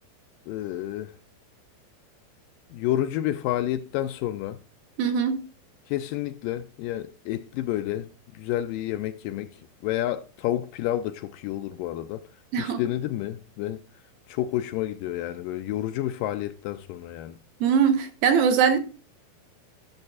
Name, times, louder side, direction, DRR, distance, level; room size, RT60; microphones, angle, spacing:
voice 1, 0.5-1.1 2.7-4.6 5.9-12.2 12.6-13.8 14.3-17.4, left 13 dB, 80° left, 2.0 m, -30 dB
voice 2, 5.0-5.4 12.5-12.8 17.6-18.8, right 7 dB, 75° right, 2.9 m, -21 dB
13.0 x 7.2 x 2.4 m
omnidirectional pair, 4.2 m